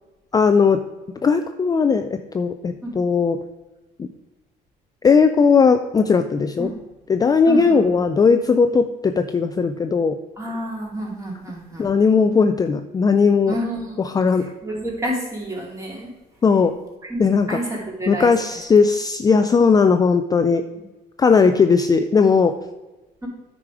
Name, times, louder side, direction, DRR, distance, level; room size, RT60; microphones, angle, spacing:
voice 1, 0.3-0.8 1.2-3.4 4.0-4.1 5.0-6.7 7.1-10.2 11.8-13.5 14.0-14.5 16.4-16.7 17.2-17.6 18.1-20.6 21.2-22.5, left 5 dB, 20° left, 8 dB, 0.4 m, -17 dB
voice 2, 7.5-8.0 10.4-11.9 13.5-14.0 14.4-16.1 17.0-17.2 17.5-18.3 23.2-23.3, right 1 dB, 20° right, -2 dB, 2.8 m, -29 dB
9.4 x 4.9 x 4.9 m, 1.1 s
cardioid pair, 110°, 17 cm